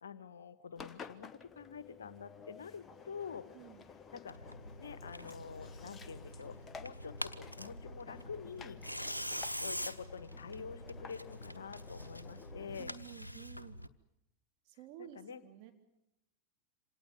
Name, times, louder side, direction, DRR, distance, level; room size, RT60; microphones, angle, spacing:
voice 1, 0.0-3.5 4.1-4.4 4.8-8.8 9.6-12.9 15.0-15.4, left 6 dB, 65° left, 14 dB, 1.4 m, -47 dB
Engine, 0.8-12.8, left 5 dB, 20° left, 1.2 m, -53 dB
voice 2, 3.5-3.8 12.8-13.8 14.6-15.7, right 12 dB, 45° right, 4 dB, 3.5 m, -52 dB
Tearing, 4.3-13.9, equal, 85° left, 1.0 m, -45 dB
26.5 x 18.5 x 9.4 m, 0.87 s
figure-of-eight pair, 90°, 0 cm